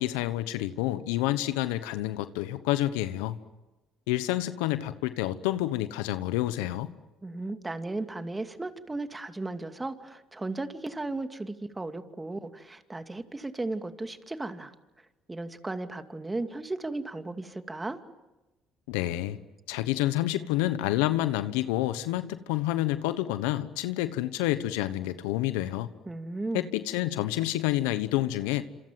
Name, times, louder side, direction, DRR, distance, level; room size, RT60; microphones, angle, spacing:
voice 1, 0.0-3.4 4.1-6.9 18.9-19.4 19.7-25.9 26.5-28.6, left 15 dB, 90° left, 12 dB, 1.1 m, -28 dB
voice 2, 7.2-14.7 15.3-18.0 26.1-26.7, right 2 dB, 20° right, 7 dB, 2.6 m, -35 dB
27.5 x 27.5 x 7.7 m, 1.0 s
supercardioid pair, 70°, 0 cm